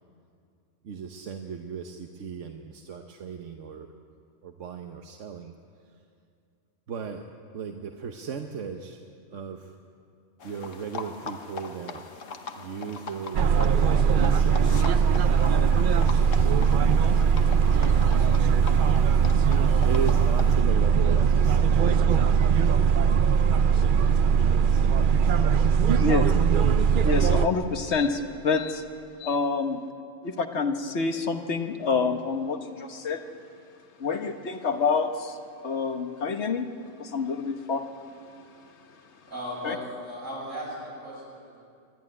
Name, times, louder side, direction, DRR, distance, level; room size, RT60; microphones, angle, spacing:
voice 1, 0.8-3.9 4.4-5.5 6.9-7.2 7.5-9.0 9.3-9.7 10.4-12.0 12.6-13.6 14.2-15.3 15.9-17.3 17.5-18.0 19.8-25.5 25.8-26.1, right 6 dB, 75° right, 4 dB, 1.3 m, -37 dB
sound 1, 10.4-20.5, left 5 dB, 80° left, 1.5 m, -41 dB
sound 2, 13.3-27.5, right 6 dB, 55° right, 0.6 m, -20 dB
voice 2, 27.0-28.8 29.2-29.8 30.2-33.2 34.0-35.4 35.6-36.7 37.0-37.9 39.6-39.8, left 4 dB, 60° left, 6 dB, 1.4 m, -27 dB
voice 3, 39.3-41.6, equal, 90° right, -6 dB, 8.3 m, -37 dB
26.0 x 11.5 x 9.7 m, 2.4 s
omnidirectional pair, 1.3 m